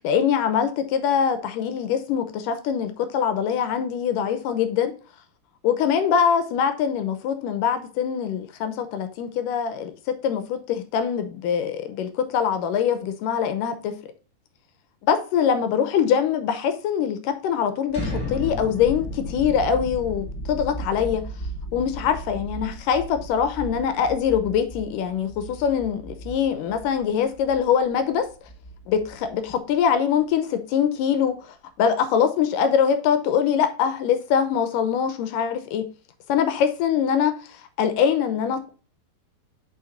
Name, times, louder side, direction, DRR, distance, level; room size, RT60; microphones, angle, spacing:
voice 1, 0.0-4.9 5.6-14.0 15.0-21.2 21.7-28.3 28.9-29.4 29.7-31.4 31.8-35.9 36.3-38.8, left 7 dB, 75° left, 2.2 m, -23 dB
sound 1, 17.9-29.7, equal, 10° right, 1.6 m, -35 dB
6.9 x 5.0 x 3.9 m
omnidirectional pair, 4.3 m